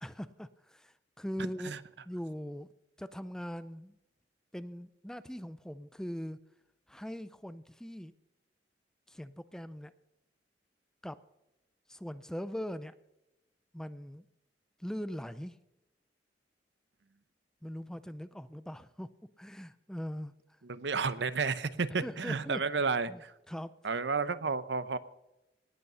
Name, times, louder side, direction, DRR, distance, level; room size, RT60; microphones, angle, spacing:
voice 1, 0.0-1.7 2.1-2.7 3.0-4.0 4.5-6.4 6.9-8.1 9.1-9.9 11.0-11.2 11.9-12.9 13.7-14.3 14.8-15.6 17.6-20.3 22.0-22.6 23.1-23.2 23.5-23.7, equal, 5° left, 14 dB, 0.5 m, -41 dB
voice 2, 20.7-23.3 23.8-25.0, right 4 dB, 80° right, 14 dB, 0.8 m, -31 dB
18.5 x 8.3 x 5.6 m, 0.94 s
head